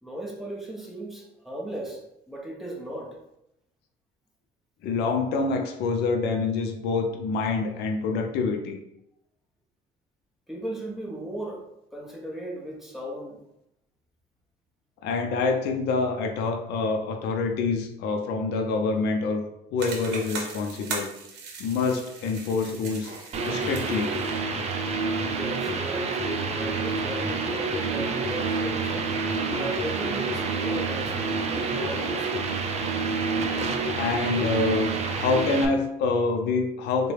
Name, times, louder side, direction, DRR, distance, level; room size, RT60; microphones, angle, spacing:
voice 1, 0.0-3.2 10.5-13.4 25.3-29.1 29.5-32.3, right 1 dB, ahead, -2 dB, 0.8 m, -36 dB
voice 2, 4.8-8.8 15.0-19.5 19.7-21.1 21.6-23.1 23.4-24.2 33.9-37.1, left 4 dB, 80° left, 4 dB, 0.5 m, -26 dB
sound 1, 19.8-24.4, right 4 dB, 85° right, 0.7 m, -38 dB
sound 2, 23.3-35.6, right 4 dB, 40° right, 0.5 m, -28 dB
3.7 x 2.2 x 3.2 m, 0.81 s
cardioid pair, 110°, 17 cm